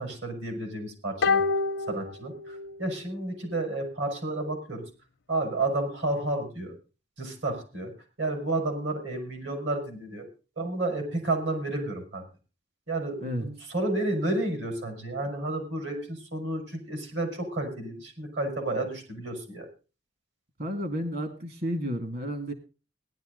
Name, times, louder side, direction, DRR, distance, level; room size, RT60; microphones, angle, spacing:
voice 1, 0.0-1.4 1.9-4.8 5.3-6.8 7.2-7.9 8.2-10.2 10.6-12.2 12.9-19.7, right 2 dB, 75° right, 4 dB, 5.5 m, -31 dB
sound 1, 1.2-2.9 3.1-3.2, left 4 dB, 75° left, 0.6 m, -27 dB
voice 2, 20.6-22.5, equal, 55° right, 7 dB, 2.2 m, -31 dB
18.0 x 11.0 x 3.9 m, 0.32 s
head